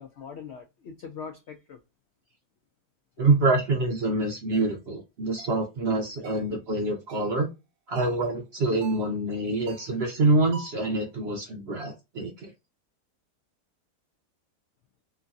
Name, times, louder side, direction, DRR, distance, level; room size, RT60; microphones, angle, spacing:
voice 1, 0.0-1.8 6.4-6.8, left 6 dB, 85° left, 0.6 m, -42 dB
voice 2, 3.2-7.5 7.9-12.5, right 2 dB, 55° right, 0.7 m, -26 dB
sound 1, 4.5-4.7 5.4-5.6 6.2-6.5 7.1-7.4 7.9-8.3 8.8-9.1 9.7-10.0 10.5-10.9, right 4 dB, 80° right, 1.2 m, -46 dB
3.0 x 2.6 x 2.2 m
omnidirectional pair, 1.8 m